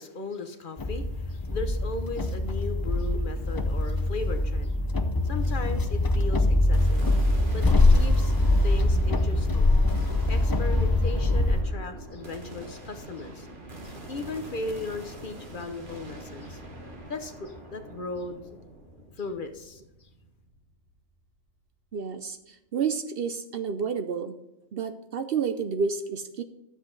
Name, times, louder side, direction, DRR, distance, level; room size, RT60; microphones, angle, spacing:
voice 1, 0.0-4.7 5.2-8.3 8.6-13.5 13.8-16.6 17.1-18.4 19.1-20.1, left 3 dB, 50° left, 8 dB, 0.9 m, -37 dB
sound 1, 0.8-11.6, left 2 dB, 30° left, 0.5 m, -23 dB
sound 2, 6.7-21.0, right 1 dB, 45° right, 1.7 m, -43 dB
voice 2, 21.9-24.4 24.7-26.4, right 6 dB, 60° right, 9 dB, 0.7 m, -30 dB
12.0 x 7.5 x 3.9 m, 0.95 s
omnidirectional pair, 1.3 m